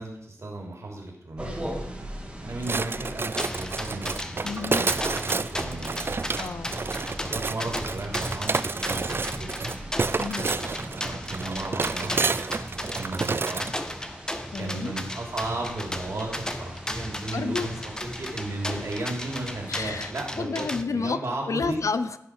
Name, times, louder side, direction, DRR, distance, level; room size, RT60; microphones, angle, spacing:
voice 1, 0.0-1.6 2.4-5.9 7.2-9.7 10.8-12.2 12.7-13.6 14.6-21.8, right 2 dB, 55° right, -1 dB, 3.2 m, -35 dB
sound 1, 1.4-20.1, right 1 dB, 20° right, 2.1 m, -41 dB
sound 2, 2.6-13.7, right 4 dB, 40° right, 0.4 m, -29 dB
sound 3, 3.4-20.8, left 1 dB, 10° left, 0.8 m, -35 dB
voice 2, 4.4-5.0 6.3-6.8 10.2-10.6 14.5-14.9 17.3-17.7 19.7-20.1 20.4-21.2 21.5-22.2, left 4 dB, 65° left, 12 dB, 0.7 m, -30 dB
16.0 x 5.6 x 4.8 m, 0.82 s
wide cardioid pair, 85°, 6 cm